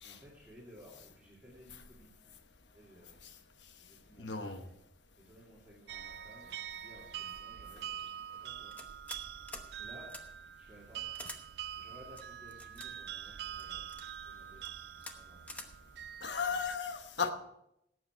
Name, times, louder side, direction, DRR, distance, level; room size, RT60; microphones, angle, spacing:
voice 1, 0.0-2.1 2.7-3.2 3.8-4.7 5.2-8.8 9.8-10.1 10.6-11.1 11.8-13.9 14.2-15.4 16.3-16.6, equal, 10° right, -7 dB, 2.5 m, -57 dB
voice 2, 4.2-4.6 16.2-17.3, left 5 dB, 80° left, 7 dB, 1.1 m, -35 dB
sound 1, 5.9-16.8, right 10 dB, 65° right, 0.4 m, -45 dB
sound 2, 8.7-9.2 9.5-9.7 10.1-10.2 11.1-11.4 12.2-12.9 13.6-14.1 14.6-14.7 15.0-15.2 15.5-15.7, left 1 dB, 10° left, 1.0 m, -46 dB
17.5 x 7.8 x 4.5 m, 0.81 s
head